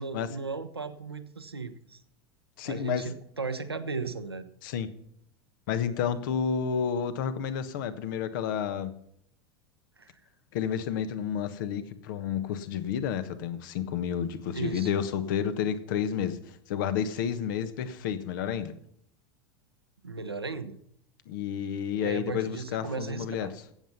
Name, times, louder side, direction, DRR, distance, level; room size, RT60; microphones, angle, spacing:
voice 1, 0.0-2.0 2.6-4.4 10.0-10.2 14.5-14.9 20.0-20.8 22.0-23.5, right 4 dB, 85° right, 7 dB, 1.2 m, -36 dB
voice 2, 2.6-3.0 4.6-4.9 5.7-8.9 10.5-16.4 16.7-18.7 21.3-23.5, left 8 dB, 55° left, 11 dB, 1.3 m, -30 dB
16.0 x 8.0 x 5.7 m, 0.69 s
figure-of-eight pair, 85°, 13 cm